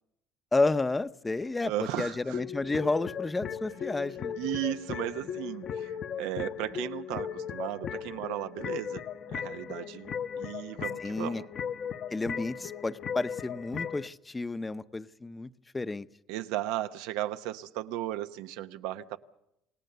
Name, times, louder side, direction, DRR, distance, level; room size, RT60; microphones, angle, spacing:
voice 1, 0.5-4.3 11.0-11.4 12.1-16.1, left 3 dB, 15° left, 0.7 m, -31 dB
voice 2, 1.6-2.4 4.4-9.0 9.3-11.5 16.3-19.2, right 14 dB, 90° right, 0.9 m, -35 dB
sound 1, 2.3-14.1, left 8 dB, 45° left, 0.9 m, -37 dB
28.0 x 18.0 x 6.8 m
cardioid pair, 125°, 0 cm